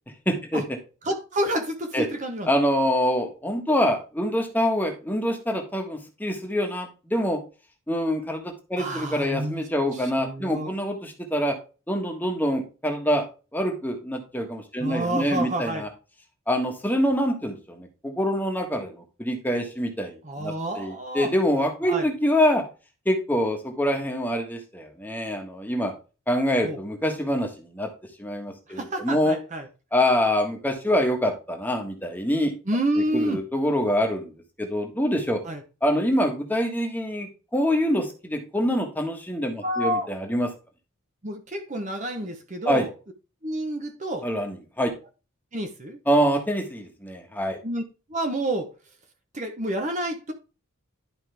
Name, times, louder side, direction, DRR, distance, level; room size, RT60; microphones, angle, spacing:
voice 1, 0.2-0.6 1.9-2.0 2.4-7.4 7.9-11.6 11.9-13.2 13.5-15.9 16.5-22.6 23.0-25.9 26.3-27.9 28.2-29.4 29.9-32.5 33.1-34.3 34.6-35.4 35.8-40.5 42.6-42.9 44.2-44.9 46.1-47.6, equal, 10° left, 1.4 m, -25 dB
voice 2, 1.0-2.5 8.8-9.6 9.9-10.7 14.8-15.8 20.2-21.3 21.9-22.1 26.6-26.8 28.7-29.7 32.7-33.4 35.4-35.6 39.6-40.1 41.2-42.9 43.4-44.3 45.5-46.0 47.6-47.8 48.1-48.7 49.3-50.3, right 1 dB, 35° right, 0.9 m, -29 dB
11.5 x 5.1 x 3.4 m
head